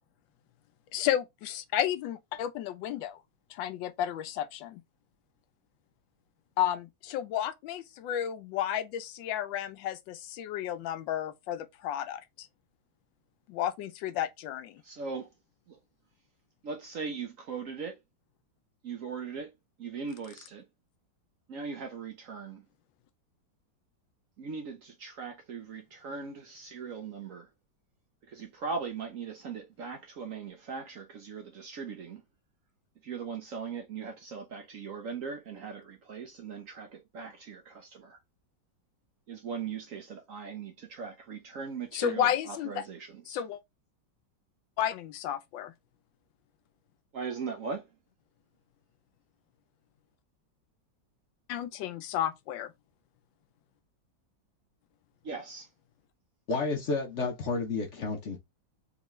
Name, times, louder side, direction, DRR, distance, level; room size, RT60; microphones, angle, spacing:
voice 1, 0.9-3.2 3.5-4.8 6.6-12.5 13.5-14.8 41.9-42.8 43.3-43.6 44.8-45.7 51.5-52.7, left 11 dB, 90° left, 1.3 m, -32 dB
voice 2, 14.8-15.3 15.7-15.8 16.6-18.0 18.8-19.5 19.8-20.6 21.5-22.6 24.4-27.5 28.3-32.2 33.0-38.2 39.3-43.4 47.1-47.9 55.2-55.7, right 5 dB, 60° right, 0.9 m, -39 dB
voice 3, 56.5-58.4, left 3 dB, 60° left, 0.8 m, -31 dB
3.6 x 3.1 x 3.0 m
omnidirectional pair, 2.0 m